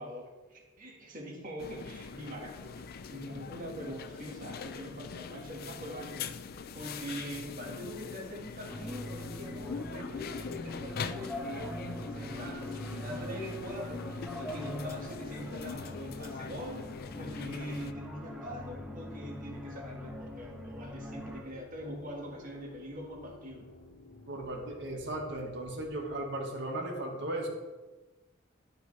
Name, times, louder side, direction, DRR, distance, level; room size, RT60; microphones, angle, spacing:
voice 1, 0.0-16.8 17.2-23.7, equal, 45° right, -1 dB, 1.7 m, -43 dB
sound 1, 1.6-17.9, left 5 dB, 50° left, 0.4 m, -42 dB
sound 2, 8.7-21.4, equal, 5° right, 0.7 m, -43 dB
sound 3, 18.2-26.2, left 2 dB, 75° left, 0.9 m, -54 dB
voice 2, 24.3-27.5, right 1 dB, 60° right, 1 dB, 1.6 m, -36 dB
12.0 x 4.9 x 3.2 m, 1.2 s
head